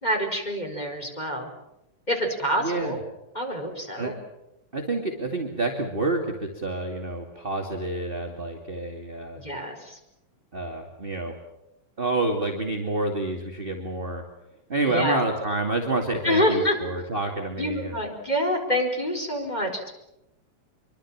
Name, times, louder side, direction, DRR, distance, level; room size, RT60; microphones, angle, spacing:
voice 1, 0.0-1.5 2.1-3.0 3.3-4.1 9.3-10.0 14.8-15.2 16.2-16.8 17.6-20.0, equal, 15° left, 3 dB, 4.5 m, -26 dB
voice 2, 2.6-3.0 4.0-4.1 4.7-9.4 10.5-11.3 12.0-14.2 14.7-18.0, right 2 dB, 20° right, 2 dB, 2.3 m, -28 dB
26.0 x 24.0 x 7.4 m, 0.87 s
omnidirectional pair, 3.4 m